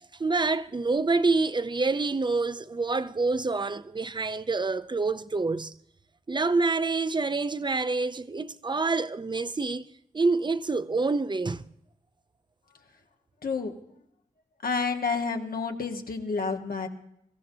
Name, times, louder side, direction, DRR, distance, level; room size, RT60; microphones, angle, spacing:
voice 1, 0.2-5.7 6.3-9.8 10.1-11.6, right 3 dB, 30° right, 0.6 m, -27 dB
voice 2, 13.4-13.7 14.6-16.9, left 4 dB, 85° left, 1.4 m, -29 dB
24.5 x 15.0 x 2.8 m
wide cardioid pair, 60°, 15 cm